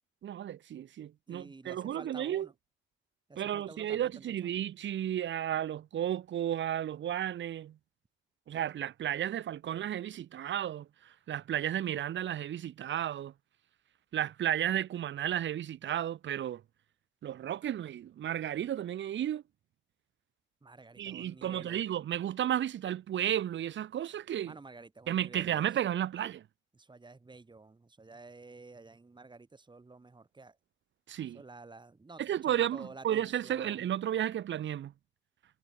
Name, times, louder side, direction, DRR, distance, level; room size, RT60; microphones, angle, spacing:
voice 1, 0.2-2.5 3.4-7.8 8.5-13.3 14.1-16.6 17.2-19.4 21.0-24.6 25.1-26.4 31.1-31.4 32.2-34.9, right 11 dB, 70° right, 3.5 m, -33 dB
voice 2, 1.3-2.5 3.3-4.5 20.6-21.8 24.5-25.7 26.7-30.6 31.3-33.9, right 3 dB, 25° right, 7.7 m, -51 dB
cardioid pair, 90°, 20 cm